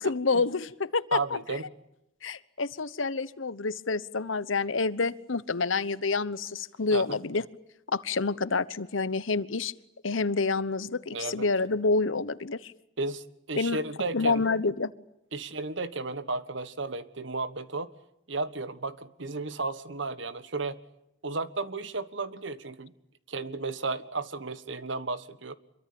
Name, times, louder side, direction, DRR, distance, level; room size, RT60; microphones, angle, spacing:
voice 1, 0.0-1.2 2.2-7.4 7.9-9.7 10.0-12.7 13.5-13.8 14.1-14.9, left 3 dB, 80° left, 16 dB, 1.1 m, -28 dB
voice 2, 1.1-1.6 6.9-7.2 11.1-11.5 13.0-14.4 15.3-17.9 18.3-20.8 21.2-22.9 23.3-25.5, right 3 dB, 70° right, 14 dB, 1.4 m, -33 dB
25.5 x 23.5 x 8.7 m, 0.81 s
head